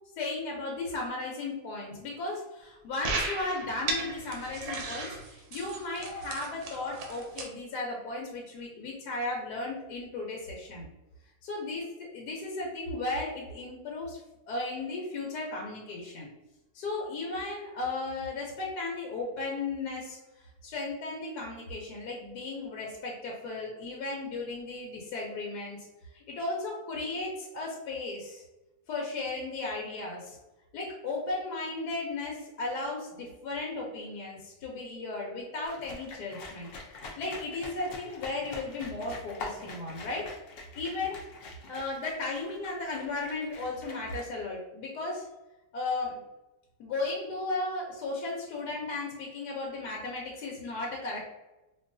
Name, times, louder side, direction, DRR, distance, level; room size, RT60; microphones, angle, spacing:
voice 1, 0.2-10.9 11.4-14.2 14.5-16.3 16.7-20.2 20.6-25.9 26.1-28.4 28.9-30.4 30.7-40.3 40.7-41.2 41.7-45.3 45.7-46.2 46.8-51.2, left 2 dB, 85° left, -2 dB, 1.3 m, -35 dB
sound 1, 3.0-7.4, right 3 dB, 75° right, 1.2 m, -36 dB
sound 2, 35.6-44.2, left 3 dB, 65° left, 0.6 m, -45 dB
4.5 x 2.3 x 2.6 m, 1.0 s
omnidirectional pair, 1.7 m